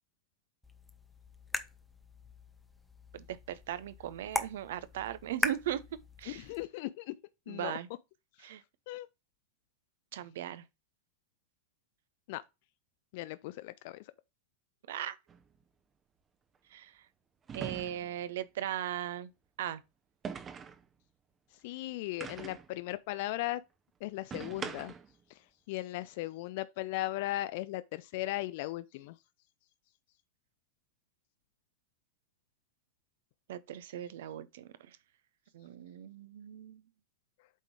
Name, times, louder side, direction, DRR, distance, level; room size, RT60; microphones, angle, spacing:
sound 1, 0.6-6.7, left 2 dB, 5° left, 0.7 m, -40 dB
voice 1, 3.1-5.8 6.2-6.5 7.5-7.9 8.4-8.6 10.1-10.6 14.9-15.2 16.7-16.9 17.5-19.3 19.6-19.8 33.5-35.0 35.5-36.8, right 11 dB, 55° right, 0.6 m, -38 dB
voice 2, 6.3-7.1 7.5-7.8 8.9-9.1 12.3-12.4 13.1-14.0 21.6-23.6 24.0-24.9 25.7-29.2, left 17 dB, 50° left, 0.4 m, -37 dB
sound 2, 15.3-15.4 17.5-18.2 20.2-20.8 22.2-22.7 24.3-25.1, right 6 dB, 20° right, 0.8 m, -42 dB
8.2 x 3.7 x 4.7 m
figure-of-eight pair, 90°, 0 cm